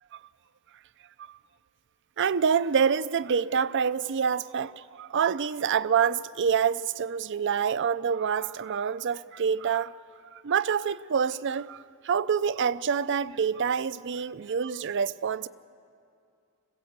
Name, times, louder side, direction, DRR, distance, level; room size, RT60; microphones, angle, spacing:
voice 1, 2.2-9.9 10.3-15.5, right 7 dB, 55° right, 0.5 m, -27 dB
26.0 x 16.5 x 8.0 m
head